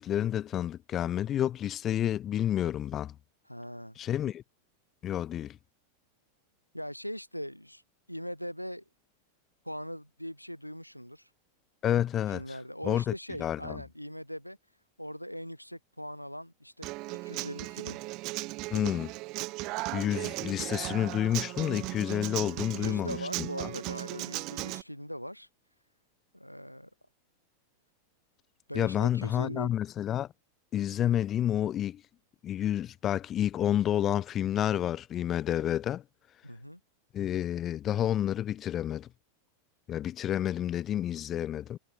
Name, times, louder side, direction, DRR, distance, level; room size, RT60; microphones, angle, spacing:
voice 1, 0.0-3.1 4.0-4.4 5.0-5.6 11.8-12.4 12.8-13.1 13.4-13.8 18.7-19.1 19.9-23.7 28.7-30.3 30.7-32.0 32.4-36.0 37.1-39.1 39.9-41.8, left 11 dB, 30° left, 0.4 m, -29 dB
voice 2, 3.4-4.0 6.7-7.8 8.1-8.8 9.6-11.3 12.3-16.9 17.2-18.0 22.7-25.5 26.3-26.9 28.7-29.7 36.4-36.8, equal, 90° left, 0.7 m, -40 dB
Human voice / Acoustic guitar, 16.8-24.8, right 22 dB, 40° right, 0.5 m, -37 dB
figure-of-eight pair, 90°, 0 cm